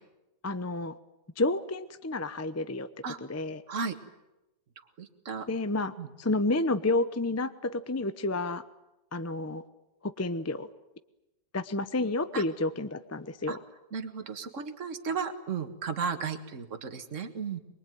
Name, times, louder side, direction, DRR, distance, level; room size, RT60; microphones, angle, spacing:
voice 1, 0.4-0.9 1.4-2.9 3.3-3.6 5.5-5.9 6.2-8.6 9.1-9.6 10.0-10.7 11.5-13.6, left 2 dB, 15° left, 11 dB, 0.5 m, -30 dB
voice 2, 3.7-4.0 5.0-5.5 6.0-6.1 12.3-12.4 13.5-13.6 13.9-17.6, right 5 dB, 45° right, 6 dB, 2.0 m, -34 dB
24.0 x 23.0 x 9.4 m, 0.94 s
omnidirectional pair, 1.9 m